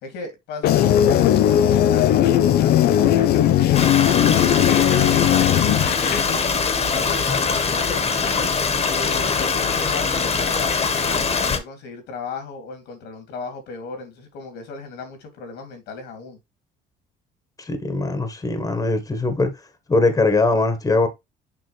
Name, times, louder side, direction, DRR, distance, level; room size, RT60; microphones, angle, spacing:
voice 1, 0.0-5.5 6.0-6.5 6.9-8.0 8.8-16.4, left 4 dB, 90° left, 2.9 m, -36 dB
sound 1, 0.6-6.2, left 11 dB, 70° left, 0.7 m, -17 dB
Stream, 3.7-11.6, left 5 dB, 40° left, 1.6 m, -22 dB
voice 2, 17.6-19.5 19.9-21.1, left 3 dB, 20° left, 1.6 m, -21 dB
6.8 x 5.3 x 3.3 m
cardioid pair, 110°, 17 cm